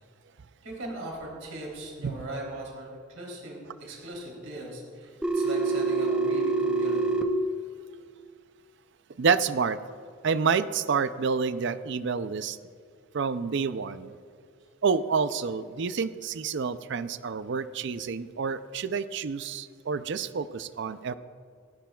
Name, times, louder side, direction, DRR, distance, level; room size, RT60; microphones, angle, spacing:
voice 1, 0.6-7.2, right 1 dB, 85° right, -2 dB, 3.3 m, -39 dB
Telephone, 5.2-7.2, right 3 dB, 5° right, 0.8 m, -25 dB
voice 2, 9.2-9.8 10.2-12.6 13.1-14.1 14.8-21.1, right 5 dB, 60° right, 13 dB, 0.5 m, -28 dB
27.5 x 10.5 x 2.3 m, 2.2 s
head